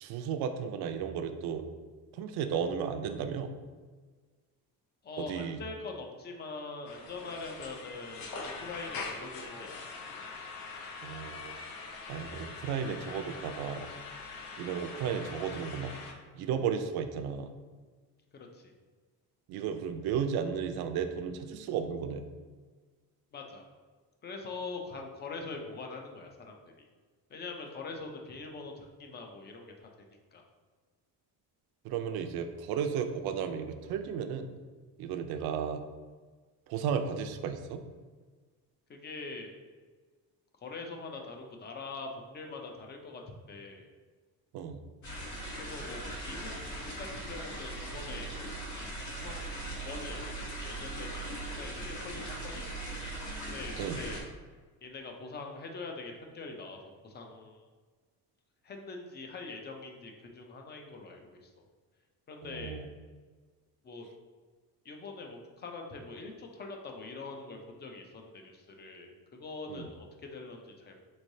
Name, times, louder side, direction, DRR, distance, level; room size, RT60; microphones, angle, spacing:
voice 1, 0.0-1.7 2.1-3.5 5.2-5.6 11.0-11.6 12.1-13.9 14.6-15.9 16.3-17.5 19.5-22.2 31.8-34.5 35.0-35.8 36.7-37.8 44.5-44.8 53.8-54.0 62.4-62.9 69.7-69.9, right 7 dB, 75° right, 7 dB, 0.5 m, -34 dB
voice 2, 5.0-9.8 18.3-18.7 23.3-23.7 24.2-26.9 27.3-29.9 30.3-30.4 38.9-39.5 40.6-43.2 43.5-43.9 45.6-46.0 46.3-46.5 47.0-48.3 49.0-53.1 53.4-54.2 54.8-56.8 57.0-57.6 58.6-61.6 62.3-62.8 63.8-64.1 64.8-71.0, left 3 dB, 25° left, 2 dB, 0.5 m, -43 dB
sound 1, 6.9-16.1, left 4 dB, 65° left, 0.7 m, -43 dB
sound 2, 45.0-54.2, right 1 dB, 50° left, 1.2 m, -39 dB
4.5 x 3.2 x 2.6 m, 1.4 s
cardioid pair, 145°, 38 cm